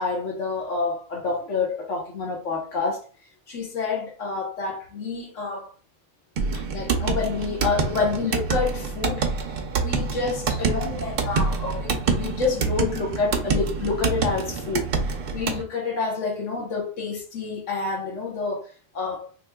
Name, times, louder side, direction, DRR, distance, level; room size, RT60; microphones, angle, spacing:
voice 1, 0.0-3.0 3.5-5.7 6.5-9.3 9.8-19.3, left 4 dB, 70° left, 1.3 m, -28 dB
sound 1, 6.4-15.6, right 4 dB, 60° right, 0.7 m, -26 dB
3.6 x 3.1 x 2.2 m
omnidirectional pair, 1.3 m